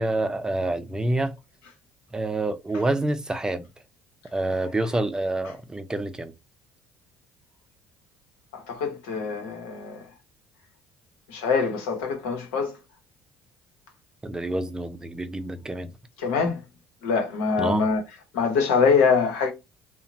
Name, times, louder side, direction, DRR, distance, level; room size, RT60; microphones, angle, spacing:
voice 1, 0.0-1.4 2.1-3.6 4.3-6.3 14.2-15.9 17.6-17.8, right 2 dB, 15° right, 0.5 m, -27 dB
voice 2, 8.5-10.0 11.3-12.7 16.2-16.6 17.0-18.0 18.3-19.5, left 5 dB, 80° left, 0.9 m, -24 dB
2.9 x 2.1 x 2.5 m
hypercardioid pair, 65°, 5 cm